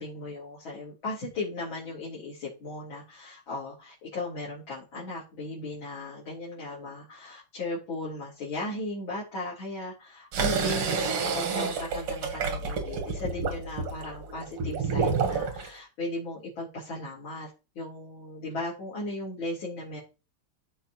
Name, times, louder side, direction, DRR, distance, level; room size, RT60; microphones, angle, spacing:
voice 1, 0.0-17.5 17.8-20.0, left 2 dB, 60° left, -7 dB, 3.6 m, -37 dB
sound 1, 10.3-15.7, right 5 dB, 85° right, 2.3 m, -29 dB
14.0 x 4.9 x 3.0 m, 0.31 s
omnidirectional pair, 2.4 m